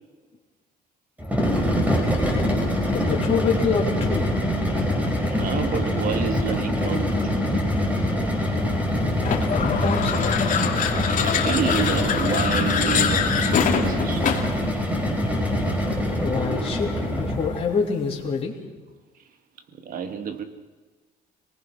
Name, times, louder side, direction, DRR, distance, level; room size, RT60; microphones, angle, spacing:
sound 1, 1.2-17.6, equal, 10° right, 5.1 m, -24 dB
voice 1, 2.9-4.4 9.0-10.5 16.2-18.6, left 5 dB, 35° left, -2 dB, 3.3 m, -26 dB
voice 2, 5.3-7.3 11.1-14.3 15.0-15.1 19.8-20.4, right 7 dB, 55° right, 8 dB, 2.2 m, -29 dB
sound 2, 9.2-14.6, left 7 dB, 50° left, 2.9 m, -24 dB
26.0 x 19.5 x 6.2 m, 1.3 s
cardioid pair, 110°, 17 cm